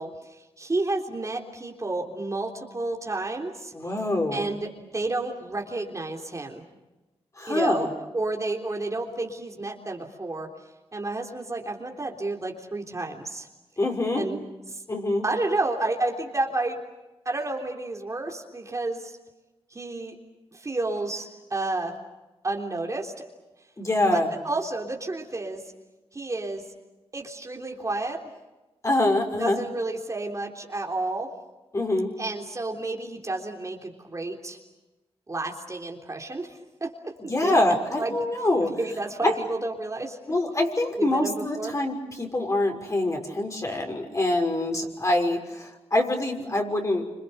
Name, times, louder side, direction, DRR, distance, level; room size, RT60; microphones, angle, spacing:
voice 1, 0.0-3.7 4.3-6.7 7.5-7.9 8.1-10.5 10.9-13.5 14.2-14.4 14.7-14.8 15.2-16.8 17.3-19.2 19.7-20.2 20.5-22.0 22.4-23.1 24.1-25.6 26.1-26.6 27.1-28.2 29.4-31.3 32.2-34.6 35.3-37.6 38.0-38.1 38.6-40.2 41.0-41.7, right 2 dB, 30° right, 1 dB, 3.5 m, -31 dB
voice 2, 3.7-4.5 7.4-7.9 13.8-14.2 14.9-15.2 23.8-24.3 28.8-29.6 31.7-32.1 37.3-38.7 39.2-39.3 40.3-47.1, left 1 dB, 30° left, 3 dB, 6.1 m, -25 dB
28.5 x 26.5 x 6.9 m, 1.1 s
cardioid pair, 85°, 11 cm